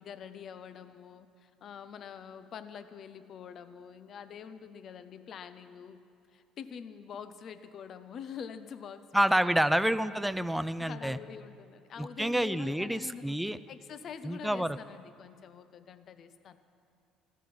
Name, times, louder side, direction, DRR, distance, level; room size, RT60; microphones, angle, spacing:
voice 1, 0.0-6.0 6.3-9.6 10.8-16.6, left 7 dB, 55° left, 12 dB, 0.6 m, -46 dB
voice 2, 9.1-11.2 12.0-13.6 14.2-14.8, right 1 dB, 5° right, 13 dB, 0.4 m, -28 dB
14.0 x 14.0 x 6.0 m, 2.4 s
supercardioid pair, 90°, 0 cm